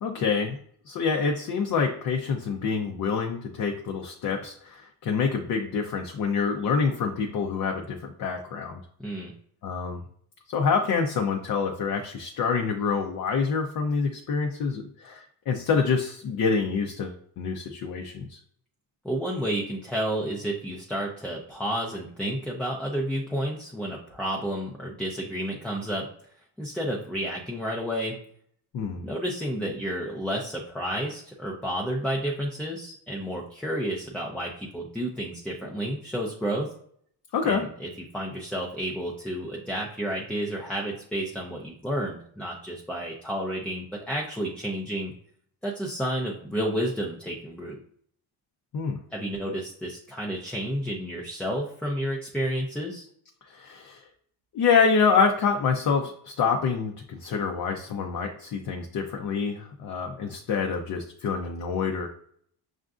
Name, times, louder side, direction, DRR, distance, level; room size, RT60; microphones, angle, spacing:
voice 1, 0.0-0.6 0.9-8.8 9.6-10.0 10.5-18.4 28.7-29.1 37.3-37.6 48.7-49.0 53.5-54.0 54.5-62.1, left 5 dB, 50° left, 2 dB, 0.6 m, -26 dB
voice 2, 9.0-9.3 19.0-26.1 26.6-28.2 29.0-36.7 37.4-45.1 45.6-47.8 49.1-53.1, equal, 5° left, -2 dB, 0.4 m, -31 dB
6.3 x 2.5 x 2.3 m, 0.62 s
cardioid pair, 130°, 43 cm